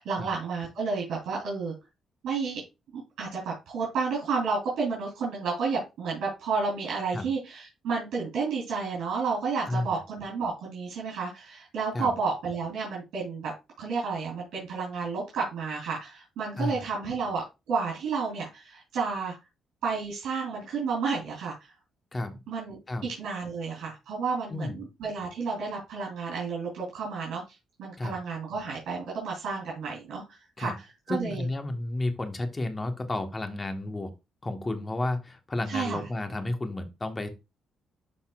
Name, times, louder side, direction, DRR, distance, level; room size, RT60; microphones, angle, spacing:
voice 1, 0.0-1.7 2.2-2.6 2.9-13.5 13.8-19.4 19.8-21.7 22.5-27.4 27.8-31.4 35.7-36.0, right 5 dB, 80° right, -3 dB, 3.2 m, -31 dB
voice 2, 16.6-16.9 22.1-22.4 22.9-23.1 24.5-24.8 28.0-28.2 30.6-30.7 31.1-34.1 34.4-37.3, left 2 dB, 25° left, 6 dB, 1.4 m, -32 dB
12.0 x 4.1 x 2.4 m, 0.25 s
cardioid pair, 90°, 0 cm